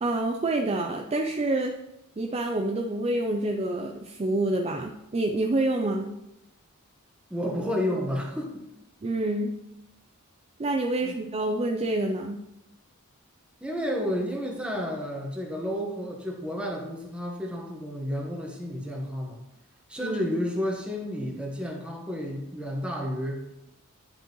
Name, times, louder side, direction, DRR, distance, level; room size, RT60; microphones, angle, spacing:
voice 1, 0.0-1.7 2.2-6.1 9.0-9.5 10.6-12.4 20.0-20.2, right 2 dB, 30° right, 2 dB, 0.4 m, -27 dB
voice 2, 7.3-8.6 11.0-11.1 13.6-19.4 19.9-23.5, equal, 5° right, -1 dB, 1.2 m, -31 dB
10.0 x 5.3 x 3.1 m, 0.87 s
head